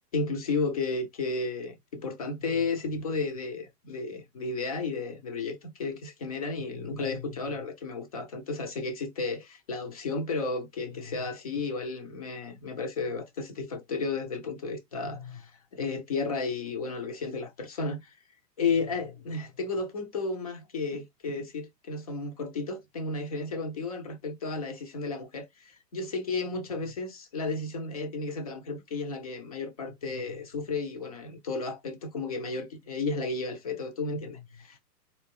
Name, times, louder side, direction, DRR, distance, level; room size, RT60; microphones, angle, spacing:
voice 1, 0.1-18.1 18.6-34.8, left 3 dB, 25° left, 0.4 m, -33 dB
4.2 x 2.4 x 3.4 m
hypercardioid pair, 145°, 49 cm